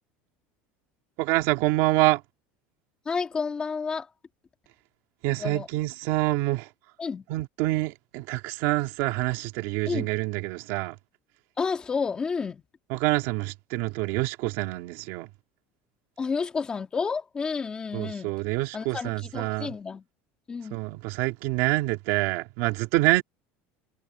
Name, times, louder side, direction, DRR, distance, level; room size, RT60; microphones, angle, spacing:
voice 1, 1.2-2.2 5.2-6.7 7.3-10.9 12.9-15.3 17.9-19.7 20.7-23.2, right 19 dB, 55° right, 2.3 m, -26 dB
voice 2, 3.1-4.1 5.4-5.7 7.0-7.2 9.9-10.1 11.6-12.6 16.2-18.3 18.7-20.0 20.5-20.8, left 5 dB, 15° left, 2.7 m, -30 dB
cardioid pair, 175°, 5 cm